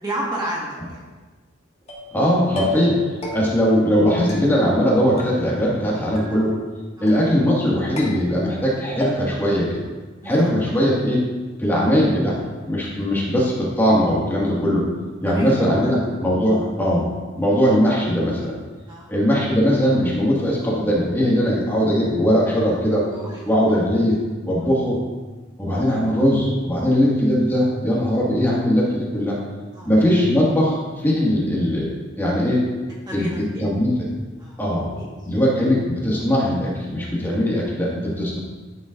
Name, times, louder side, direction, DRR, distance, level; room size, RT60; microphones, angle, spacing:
voice 1, 0.0-1.0 7.0-7.1 10.2-10.5 15.2-15.5 15.8-15.9 18.9-19.1 23.1-23.4 24.6-24.7 25.8-26.2 29.7-29.9 33.1-33.6 34.4-34.6 35.0-35.3, right 1 dB, 20° right, -5 dB, 1.6 m, -32 dB
sound 1, 1.9-2.2 2.6-3.0 3.2-3.7 4.3-4.9 5.2-5.8 6.2-6.7 7.1-7.6 8.0-8.7 9.0-9.5, left 1 dB, 35° left, 1.8 m, -33 dB
voice 2, 2.1-6.5 7.0-9.8 10.2-11.2 11.6-12.4 12.6-14.9 15.2-17.1 17.3-18.6 19.1-23.1 23.5-24.2 24.4-25.0 25.6-29.4 29.9-31.9 32.2-32.6 33.1-33.3 33.6-33.9 34.6-34.9 35.3-38.4, equal, 10° left, -6 dB, 1.9 m, -20 dB
12.5 x 7.3 x 2.6 m, 1.3 s
head